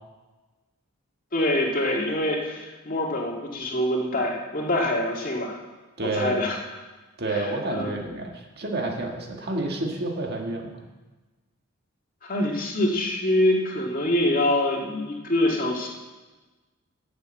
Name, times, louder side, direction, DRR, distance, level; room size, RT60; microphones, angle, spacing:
voice 1, 1.3-5.6 6.0-6.6 7.3-7.9 12.2-15.9, left 1 dB, 45° left, -1 dB, 2.2 m, -25 dB
voice 2, 6.0-6.4 7.2-10.8, right 2 dB, 50° right, 1 dB, 1.7 m, -29 dB
11.0 x 7.5 x 7.8 m, 1.2 s
head